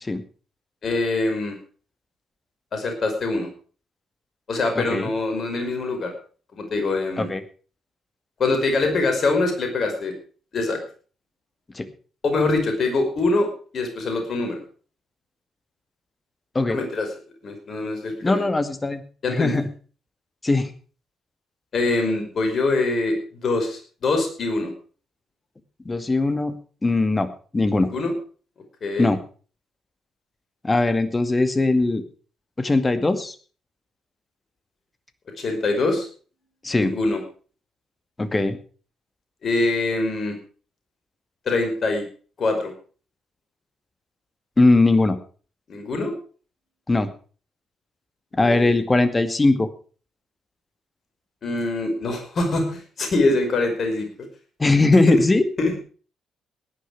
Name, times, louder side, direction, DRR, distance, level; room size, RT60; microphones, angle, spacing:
voice 1, 0.8-1.6 2.7-3.5 4.5-6.1 6.5-7.3 8.4-10.1 10.5-10.8 12.2-14.6 16.7-17.1 17.4-18.4 19.2-19.6 21.7-24.7 27.9-28.1 28.8-29.1 35.4-36.1 36.8-37.2 39.4-40.4 41.5-42.1 42.4-42.7 45.7-46.1 48.4-48.8 51.4-54.1 54.9-55.2 55.6-55.8, left 2 dB, 50° left, 5 dB, 5.3 m, -24 dB
voice 2, 4.8-5.1 7.2-7.4 11.8-11.9 16.5-16.8 18.2-19.0 19.3-19.7 20.4-20.7 25.9-26.6 26.8-27.9 29.0-29.2 30.6-32.0 32.6-33.3 36.6-36.9 38.2-38.6 44.6-45.2 46.9-47.1 48.3-49.7 54.6-55.4, left 2 dB, 25° left, 11 dB, 2.1 m, -20 dB
18.0 x 10.5 x 4.9 m, 0.39 s
hypercardioid pair, 45°, 0 cm